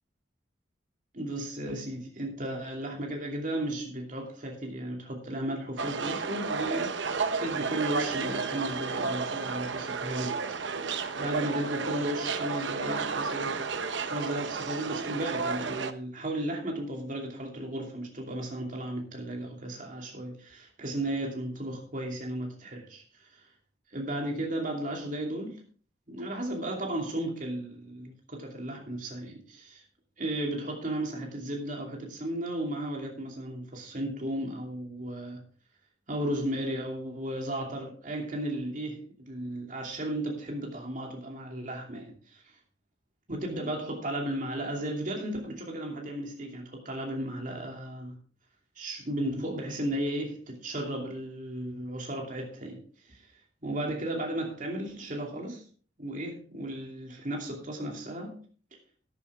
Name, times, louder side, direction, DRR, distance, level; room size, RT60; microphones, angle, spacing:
voice 1, 1.1-7.0 7.4-13.6 14.0-23.0 23.9-25.6 26.1-29.8 30.2-35.4 36.1-42.4 43.3-48.2 48.8-53.2 53.6-55.6 56.0-58.4, right 1 dB, 45° right, 2.6 m, -35 dB
sound 1, 5.8-15.9, right 5 dB, 80° right, 0.8 m, -32 dB
13.0 x 10.0 x 3.5 m
head